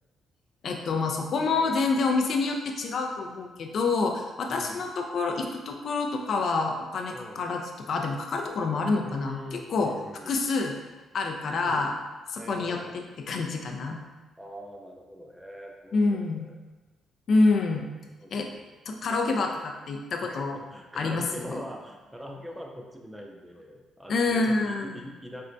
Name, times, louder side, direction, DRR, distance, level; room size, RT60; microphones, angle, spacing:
voice 1, 0.6-9.9 10.3-10.8 11.1-11.9 12.3-14.0 15.9-16.5 17.3-17.9 18.3-18.5 18.9-20.6 21.0-21.6 24.1-25.0, left 3 dB, 60° left, 2 dB, 0.3 m, -27 dB
voice 2, 4.5-4.9 7.1-7.4 9.0-10.4 11.6-11.9 12.4-13.0 14.4-16.5 18.2-18.6 20.2-25.5, equal, 5° right, 1 dB, 0.5 m, -42 dB
4.3 x 2.1 x 2.5 m, 1.2 s
cardioid pair, 90°, 0 cm